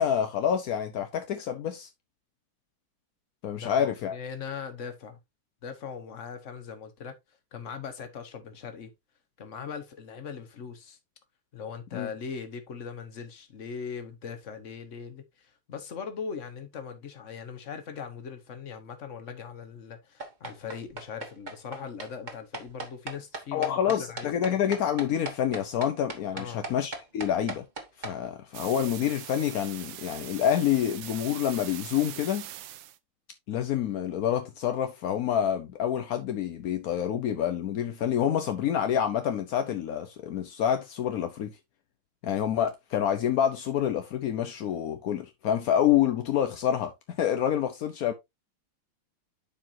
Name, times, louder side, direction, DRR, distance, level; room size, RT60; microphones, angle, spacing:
voice 1, 0.0-1.9 3.4-4.2 11.9-12.1 23.5-27.6 28.0-32.5 33.5-41.5 42.2-46.9 47.2-48.1, left 9 dB, 65° left, 0.9 m, -27 dB
voice 2, 3.5-5.2 5.6-7.2 7.5-8.9 9.4-11.0 11.5-24.3 26.3-26.7, left 6 dB, 40° left, 1.3 m, -40 dB
sound 1, 20.2-28.1, right 3 dB, 30° right, 1.0 m, -37 dB
sound 2, 28.5-33.0, right 13 dB, 70° right, 1.3 m, -42 dB
11.5 x 4.7 x 2.6 m
omnidirectional pair, 2.4 m